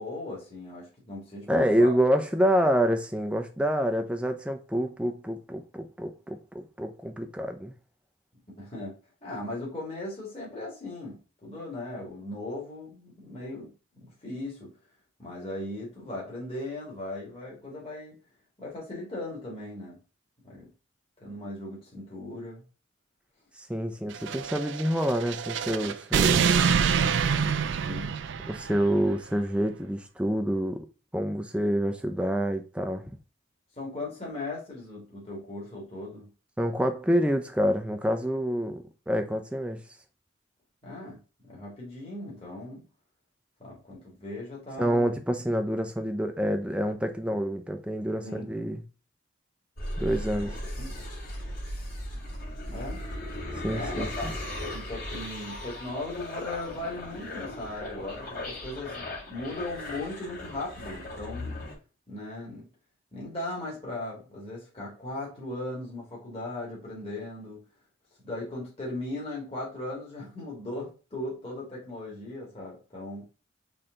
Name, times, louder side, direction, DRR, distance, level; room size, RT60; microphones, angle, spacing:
voice 1, 0.0-2.0 8.6-9.0 9.2-13.7 14.0-14.7 15.2-18.2 18.6-20.0 20.4-20.7 21.2-22.6 27.8-28.1 33.8-36.3 40.8-41.2 41.4-42.8 43.6-45.1 48.2-48.5 50.8-51.0 52.7-53.0 53.7-54.3 54.7-61.5 62.1-62.7 63.1-67.6 68.2-73.2, left 2 dB, 30° left, 1.9 m, -38 dB
voice 2, 1.5-7.7 23.6-26.5 28.5-30.9 31.1-33.1 36.6-39.8 44.8-48.8 50.0-50.5 53.6-54.3, equal, 5° right, 0.5 m, -27 dB
sound 1, 24.1-28.9, right 6 dB, 60° right, 0.4 m, -26 dB
sound 2, 49.8-61.7, left 1 dB, 45° left, 2.2 m, -37 dB
4.3 x 3.3 x 3.7 m
head